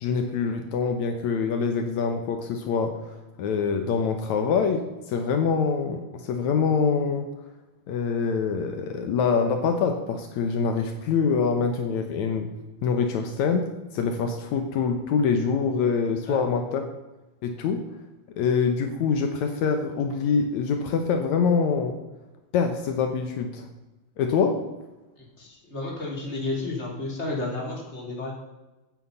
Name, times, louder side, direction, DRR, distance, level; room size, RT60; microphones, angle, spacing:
voice 1, 0.0-7.3 7.9-12.5 12.8-13.7 13.9-16.8 17.4-17.8 18.4-22.0 22.5-23.7 24.2-24.6, left 5 dB, 85° left, 5 dB, 1.6 m, -25 dB
voice 2, 25.2-28.3, left 2 dB, 15° left, -1 dB, 3.0 m, -32 dB
15.5 x 9.0 x 5.5 m, 1.1 s
omnidirectional pair, 4.9 m